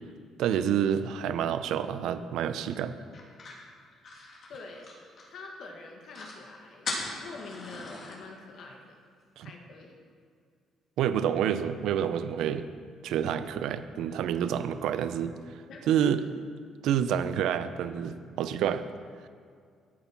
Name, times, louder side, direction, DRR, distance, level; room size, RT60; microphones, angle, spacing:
voice 1, 0.4-3.0 9.4-9.5 11.0-12.7 13.0-15.3 15.9-16.2 16.8-18.8, right 9 dB, 80° right, 11 dB, 0.6 m, -28 dB
sound 1, 3.1-5.5 5.8-5.9 6.1-6.4 6.8-8.2, left 2 dB, 50° left, 3.0 m, -39 dB
voice 2, 4.5-4.9 5.3-6.9 7.2-9.0 9.4-10.0 15.7-15.8, left 3 dB, 65° left, 1 dB, 2.0 m, -45 dB
13.5 x 8.4 x 6.0 m, 2.1 s
cardioid pair, 120°, 0 cm